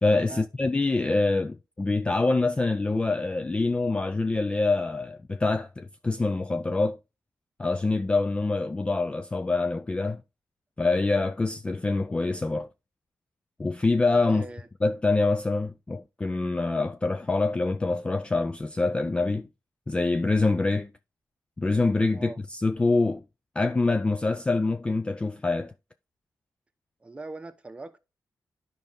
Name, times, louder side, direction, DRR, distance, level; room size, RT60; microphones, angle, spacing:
voice 1, 0.0-7.0 7.6-10.2 10.8-12.7 13.6-14.5 14.8-19.5 19.9-20.9 21.6-23.2 23.6-25.7, left 3 dB, 15° left, 0.3 m, -25 dB
voice 2, 14.3-14.7 22.1-22.4 27.0-28.0, right 3 dB, 15° right, 0.9 m, -41 dB
10.5 x 5.3 x 3.7 m
wide cardioid pair, 165°, 7 cm